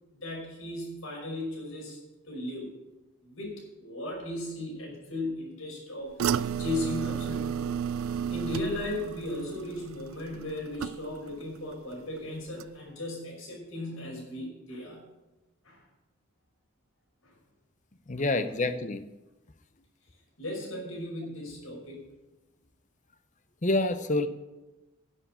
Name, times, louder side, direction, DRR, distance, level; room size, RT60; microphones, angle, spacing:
voice 1, 0.2-2.0 2.3-2.7 3.2-7.7 8.3-15.0 15.6-15.8 17.2-17.3 18.1-18.3 20.4-22.0, left 1 dB, 75° left, -1 dB, 5.3 m, -36 dB
sound 1, 6.2-11.4 11.7-12.2 12.6-12.7, right 8 dB, 75° right, 0.3 m, -33 dB
voice 2, 18.1-19.0 23.6-24.3, left 2 dB, 35° left, 11 dB, 0.7 m, -27 dB
11.0 x 7.2 x 8.7 m, 1.1 s
head